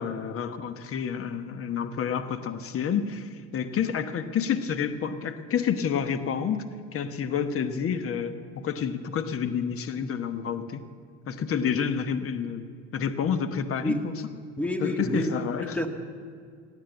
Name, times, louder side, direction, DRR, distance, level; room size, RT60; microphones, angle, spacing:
voice 1, 0.0-6.7 6.9-10.9 11.3-14.1 14.8-15.8, left 7 dB, 45° left, 11 dB, 1.1 m, -29 dB
voice 2, 14.6-15.4 15.7-15.9, left 1 dB, 5° left, 6 dB, 1.6 m, -28 dB
17.0 x 8.9 x 7.8 m, 2.1 s
supercardioid pair, 85°, 30 cm